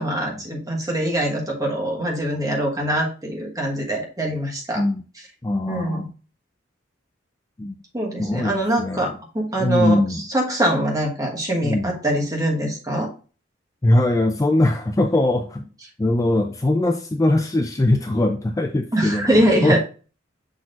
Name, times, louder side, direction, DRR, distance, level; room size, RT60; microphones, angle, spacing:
voice 1, 0.0-4.8 5.7-6.1 7.9-13.1 18.9-19.8, right 1 dB, 20° right, 0 dB, 1.4 m, -23 dB
voice 2, 5.4-6.1 7.6-7.8 8.2-9.1 9.6-10.2 11.6-11.9 13.8-15.6 16.0-19.8, left 1 dB, 20° left, 5 dB, 0.4 m, -21 dB
6.3 x 5.9 x 2.5 m, 0.36 s
head